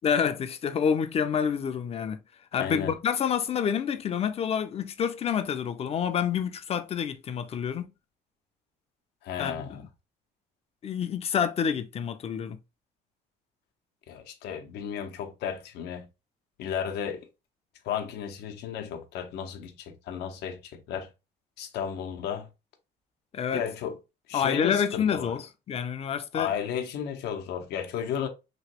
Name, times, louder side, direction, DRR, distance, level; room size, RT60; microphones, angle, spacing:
voice 1, 0.0-2.2 2.5-7.9 9.4-9.8 10.8-12.6 23.3-23.6 24.3-26.5, left 7 dB, 35° left, 0.5 m, -28 dB
voice 2, 2.6-3.0 9.2-9.8 14.1-16.1 16.6-17.3 17.8-21.1 21.6-22.5 23.5-24.0 24.3-25.3 26.3-28.3, left 8 dB, 80° left, 0.7 m, -33 dB
3.0 x 2.9 x 2.9 m
cardioid pair, 110°, 17 cm